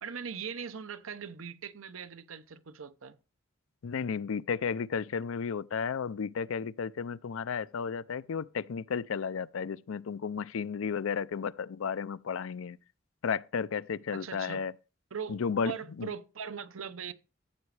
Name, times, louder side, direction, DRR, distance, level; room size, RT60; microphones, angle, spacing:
voice 1, 0.0-3.2 14.1-14.6 15.1-17.1, right 7 dB, 85° right, 0.8 m, -40 dB
voice 2, 3.8-12.8 13.2-14.7 15.3-16.1, left 6 dB, 80° left, 0.4 m, -33 dB
14.0 x 7.9 x 3.3 m
head